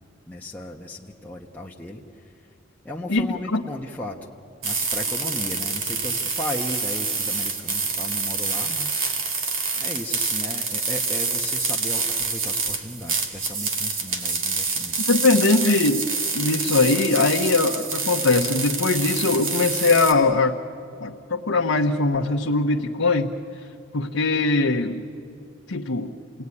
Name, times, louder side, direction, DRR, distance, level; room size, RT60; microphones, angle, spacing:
voice 1, 0.3-2.0 2.8-4.2 4.6-9.1 9.8-15.1, left 1 dB, 10° left, -3 dB, 1.2 m, -35 dB
voice 2, 3.1-3.6 15.1-16.0 16.3-20.6 21.0-23.3 23.9-25.0 25.7-26.1, left 3 dB, 80° left, 0 dB, 1.1 m, -21 dB
sound 1, 4.6-20.1, right 4 dB, 70° right, 2.4 m, -27 dB
28.0 x 18.5 x 9.8 m, 2.7 s
head